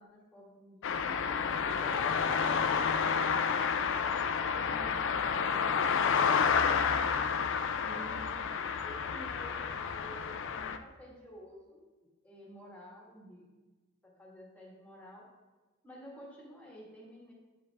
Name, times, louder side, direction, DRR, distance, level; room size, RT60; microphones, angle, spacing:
voice 1, 0.0-4.0 4.5-6.6 7.8-11.9 12.2-13.5 14.0-15.3 15.8-17.3, equal, 5° left, -4 dB, 1.9 m, -51 dB
sound 1, 0.8-10.8, left 6 dB, 60° left, 0.4 m, -30 dB
9.4 x 5.2 x 3.5 m, 1.2 s
head